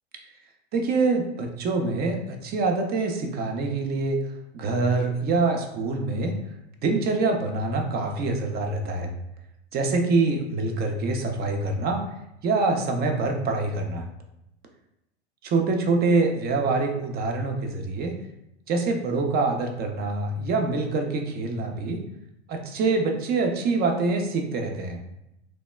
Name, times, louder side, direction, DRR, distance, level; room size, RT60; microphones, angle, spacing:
voice 1, 0.7-4.2 4.5-6.4 6.8-9.1 9.7-12.0 12.4-14.0 15.5-18.2 18.7-22.0 22.5-25.0, right 3 dB, 30° right, 3 dB, 0.5 m, -25 dB
3.1 x 2.0 x 2.2 m, 0.84 s
hypercardioid pair, 100°, 33 cm